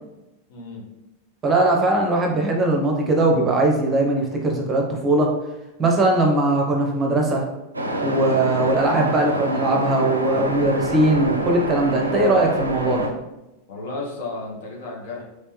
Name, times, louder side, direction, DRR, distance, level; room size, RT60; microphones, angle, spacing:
voice 1, 0.5-0.9 13.7-15.2, left 3 dB, 55° left, -2 dB, 0.9 m, -33 dB
voice 2, 1.4-5.3 5.8-7.4 8.0-13.1, right 2 dB, 20° right, 0 dB, 0.7 m, -20 dB
Waves surf, 7.7-13.1, right 1 dB, 80° right, 0.4 m, -27 dB
3.3 x 2.9 x 3.0 m, 0.96 s
figure-of-eight pair, 90°, 0 cm